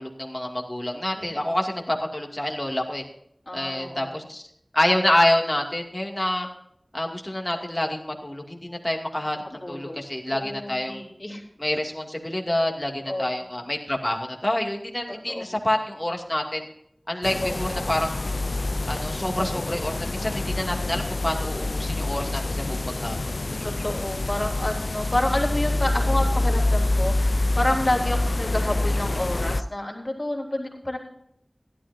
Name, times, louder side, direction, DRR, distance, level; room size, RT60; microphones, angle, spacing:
voice 1, 0.0-3.0 3.5-4.4 4.7-6.5 6.9-11.0 11.6-16.7 17.1-18.2 18.9-23.7, left 1 dB, 25° left, 1 dB, 2.4 m, -27 dB
voice 2, 1.2-1.5 3.5-4.1 9.6-10.0 10.3-11.4 13.0-13.4 15.3-15.5 17.4-17.9 23.6-31.0, left 1 dB, 40° left, -1 dB, 3.6 m, -29 dB
sound 1, 17.2-29.6, left 2 dB, 85° left, 0.4 m, -26 dB
16.0 x 12.5 x 2.7 m, 0.74 s
wide cardioid pair, 50°, 0 cm